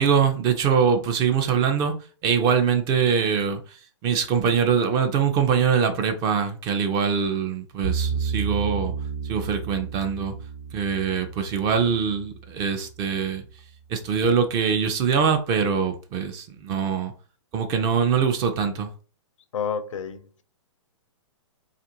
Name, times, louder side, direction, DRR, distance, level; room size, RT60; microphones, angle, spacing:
voice 1, 0.0-1.9 2.2-8.9 9.2-10.3 10.7-13.4 13.9-17.1 17.5-18.9, right 6 dB, 25° right, 0.4 m, -23 dB
sound 1, 7.8-12.9, right 5 dB, 45° right, 0.8 m, -31 dB
voice 2, 19.5-20.4, left 6 dB, 80° left, 0.5 m, -30 dB
2.9 x 2.4 x 2.8 m
hypercardioid pair, 140°, 16 cm